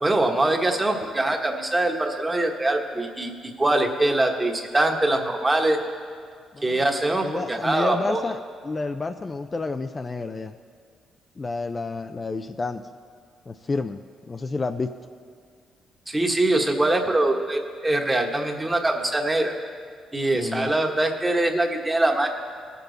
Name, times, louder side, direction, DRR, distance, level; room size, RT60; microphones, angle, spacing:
voice 1, 0.0-3.3 3.6-5.8 6.6-8.2 16.1-19.5 20.1-22.3, right 2 dB, 20° right, 3 dB, 1.3 m, -23 dB
voice 2, 6.5-6.9 7.2-8.4 8.6-10.5 11.4-12.8 13.5-14.9 20.3-20.7, left 3 dB, 30° left, 7 dB, 0.4 m, -30 dB
19.0 x 6.9 x 4.0 m, 2.1 s
cardioid pair, 90°, 0 cm